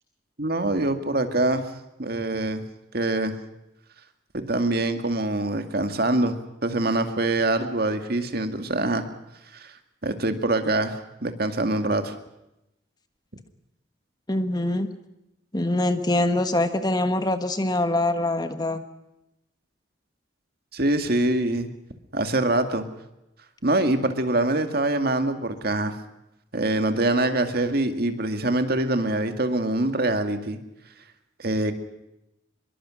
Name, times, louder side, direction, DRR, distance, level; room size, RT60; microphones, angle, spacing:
voice 1, 0.4-1.6 2.0-2.6 2.9-3.3 4.3-6.4 6.6-9.0 9.5-9.7 10.0-12.1 20.7-21.7 22.1-22.9 23.6-26.0 26.5-30.6 31.4-31.7, right 2 dB, 50° right, 7 dB, 2.2 m, -24 dB
voice 2, 14.3-14.9 15.5-18.8, left 1 dB, 20° left, 9 dB, 1.4 m, -24 dB
25.0 x 22.5 x 6.4 m, 0.88 s
head